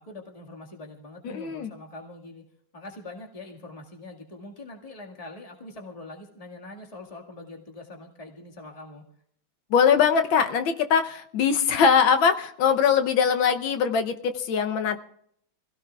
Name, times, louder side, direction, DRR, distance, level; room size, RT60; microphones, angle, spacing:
voice 1, 0.0-2.4 2.7-9.0, left 2 dB, 20° left, 0 dB, 1.8 m, -43 dB
voice 2, 1.2-1.7 9.7-15.0, left 6 dB, 75° left, 8 dB, 1.6 m, -22 dB
26.0 x 16.5 x 2.4 m, 0.67 s
omnidirectional pair, 2.2 m